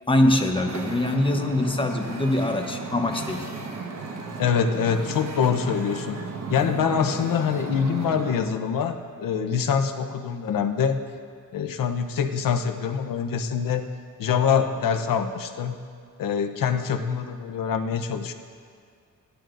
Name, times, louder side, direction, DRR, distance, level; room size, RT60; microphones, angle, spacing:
voice 1, 0.1-3.5, left 1 dB, 15° left, 4 dB, 1.0 m, -23 dB
Wind / Ocean, 0.5-8.4, right 4 dB, 50° right, 1.4 m, -35 dB
voice 2, 4.4-6.2 6.5-11.0 11.5-13.9 14.2-15.8 16.2-18.3, left 7 dB, 75° left, 6 dB, 0.8 m, -25 dB
16.5 x 11.5 x 2.6 m, 2.1 s
cardioid pair, 95°, 34 cm